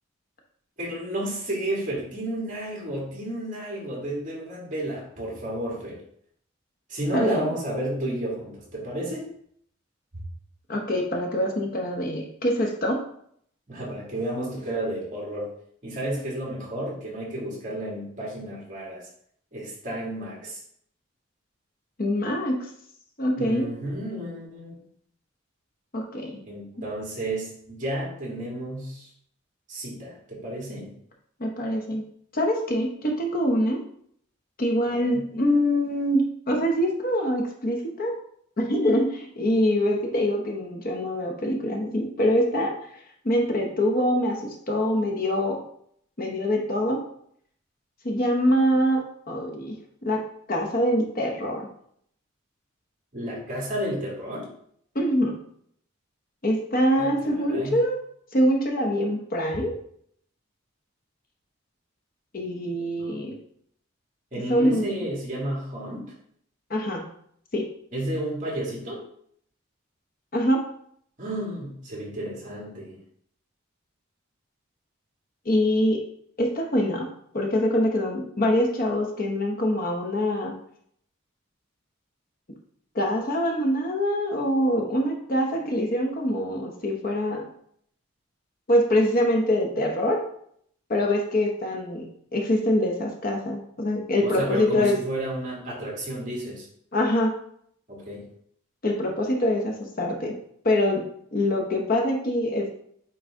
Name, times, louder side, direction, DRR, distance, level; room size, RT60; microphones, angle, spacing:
voice 1, 0.8-6.0 6.9-9.3 13.7-15.5 15.8-19.0 19.5-20.6 23.4-24.8 26.5-29.1 29.7-30.9 34.9-35.2 53.1-54.5 57.0-57.8 63.0-63.3 64.3-66.1 67.9-69.0 71.2-73.0 94.2-96.7 97.9-98.2, right 1 dB, 40° right, -4 dB, 2.2 m, -32 dB
voice 2, 7.1-7.5 10.7-13.0 22.0-22.6 23.2-23.7 25.9-26.4 31.4-32.0 32.3-33.8 34.6-38.1 38.6-42.7 43.2-45.6 46.2-47.0 48.0-49.8 50.0-50.2 50.5-51.7 54.9-55.3 56.4-58.0 58.3-59.7 62.3-63.3 64.3-64.9 66.7-67.0 67.5-67.6 70.3-70.6 75.4-76.0 76.4-77.1 77.3-80.5 82.9-87.4 88.7-90.2 90.9-92.1 92.3-95.0 96.9-97.3 98.8-100.3 100.6-101.0 101.3-102.7, equal, 45° left, 1 dB, 0.9 m, -24 dB
8.6 x 3.2 x 3.6 m, 0.66 s
head